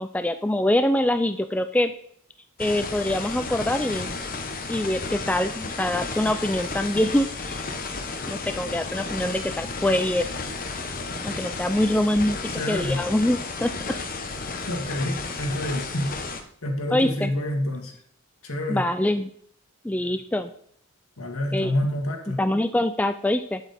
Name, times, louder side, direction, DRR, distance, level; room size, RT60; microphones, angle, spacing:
voice 1, 0.0-1.9 2.6-4.1 4.7-7.6 8.3-10.3 11.2-12.4 12.7-13.7 16.9-17.3 18.7-19.3 19.8-20.5 21.5-21.7 22.4-23.6, left 1 dB, 5° left, 9 dB, 0.3 m, -24 dB
sound 1, 2.6-16.4, left 3 dB, 40° left, 1.0 m, -33 dB
voice 2, 12.5-13.0 14.5-16.1 16.6-17.9 18.4-18.9 21.2-22.4, left 1 dB, 70° left, 2 dB, 2.0 m, -28 dB
8.5 x 7.9 x 4.2 m, 0.65 s
head